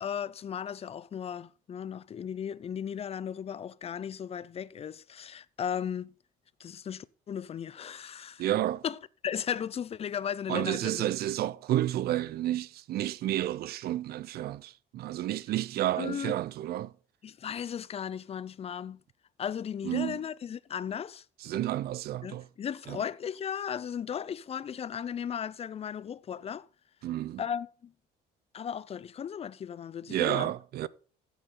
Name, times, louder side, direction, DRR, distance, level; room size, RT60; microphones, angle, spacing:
voice 1, 0.0-6.1 6.6-8.4 8.8-11.1 16.0-16.3 17.2-19.0 19.4-21.2 22.2-26.7 27.4-27.9 28.5-30.5, left 8 dB, 35° left, 0.6 m, -36 dB
voice 2, 8.4-8.8 10.5-16.9 19.8-20.2 21.4-22.5 22.9-23.0 27.0-27.4 30.1-30.9, right 13 dB, 65° right, 0.6 m, -31 dB
14.5 x 8.1 x 3.9 m
cardioid pair, 110°, 17 cm